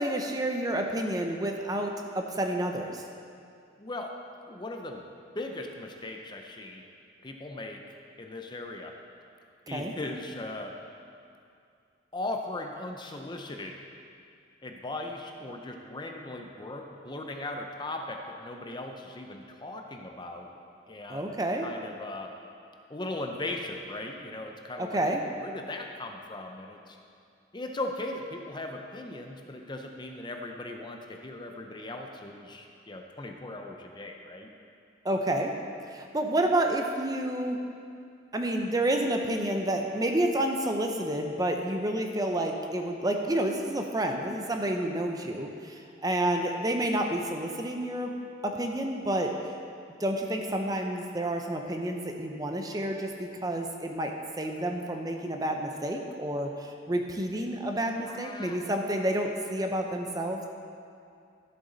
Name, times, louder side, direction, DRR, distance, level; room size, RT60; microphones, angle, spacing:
voice 1, 0.0-3.0 9.7-9.9 21.1-21.7 24.8-25.2 35.0-35.5 35.9-37.6 38.3-45.7 46.0-48.1 48.4-49.3 50.0-60.5, right 1 dB, 20° right, 3 dB, 0.6 m, -29 dB
voice 2, 3.8-4.2 4.5-5.0 5.3-6.8 7.2-7.8 8.2-8.9 9.7-10.8 12.1-13.8 14.6-20.5 20.9-22.3 22.9-25.0 25.4-27.0 27.5-34.5 58.0-58.6, left 2 dB, 25° left, 3 dB, 0.6 m, -38 dB
13.5 x 7.8 x 4.0 m, 2.4 s
head